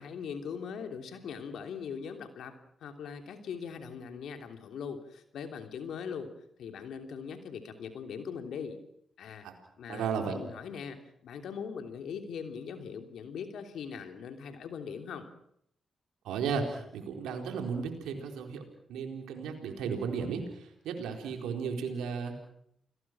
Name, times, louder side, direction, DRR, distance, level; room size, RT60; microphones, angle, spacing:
voice 1, 0.0-2.5 2.8-6.3 6.6-8.8 9.2-9.5 9.8-15.3, left 6 dB, 75° left, 6 dB, 3.1 m, -40 dB
voice 2, 9.9-10.4 16.2-18.6 18.9-22.4, right 6 dB, 85° right, 4 dB, 4.2 m, -34 dB
30.0 x 21.5 x 6.2 m, 0.72 s
hypercardioid pair, 40°, 0 cm